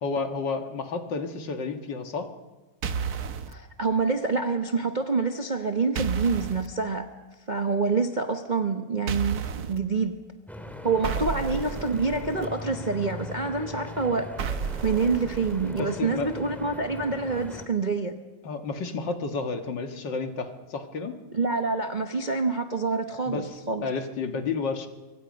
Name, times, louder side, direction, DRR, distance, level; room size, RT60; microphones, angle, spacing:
voice 1, 0.0-2.3 11.2-11.3 15.7-16.3 18.4-21.1 23.3-24.9, left 4 dB, 60° left, 6 dB, 2.2 m, -31 dB
sound 1, 2.8-3.5 6.0-6.7 9.1-9.8 11.0-12.5 14.4-15.8, right 6 dB, 55° right, 1.4 m, -32 dB
voice 2, 3.5-7.1 7.5-9.4 9.7-10.1 10.8-14.3 14.8-18.1 21.3-23.9, right 4 dB, 35° right, 5 dB, 0.8 m, -27 dB
Stream / Boat Water vehicle, 10.5-17.7, left 2 dB, ahead, 1.9 m, -40 dB
25.0 x 23.5 x 5.3 m, 1.2 s
omnidirectional pair, 2.2 m